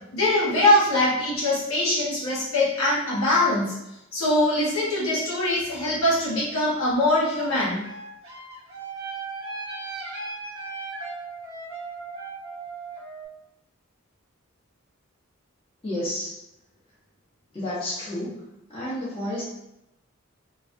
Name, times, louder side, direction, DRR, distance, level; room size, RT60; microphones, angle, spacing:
voice 1, 0.1-3.7 4.1-7.8, left 1 dB, 85° left, -7 dB, 1.2 m, -22 dB
sound 1, 7.1-13.3, right 3 dB, 85° right, 1.1 m, -37 dB
voice 2, 15.8-16.4 17.5-18.4 18.7-19.4, left 1 dB, 25° left, -9 dB, 1.1 m, -30 dB
3.2 x 2.3 x 2.5 m, 0.89 s
head